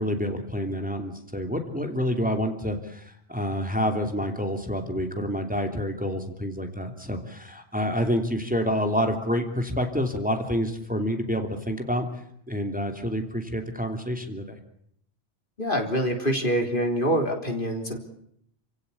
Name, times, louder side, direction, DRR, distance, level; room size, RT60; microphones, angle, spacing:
voice 1, 0.0-12.1 12.5-14.6, equal, 5° right, 5 dB, 3.0 m, -28 dB
voice 2, 15.6-18.0, equal, 50° left, 4 dB, 3.8 m, -25 dB
29.5 x 17.0 x 8.6 m, 0.70 s
omnidirectional pair, 1.1 m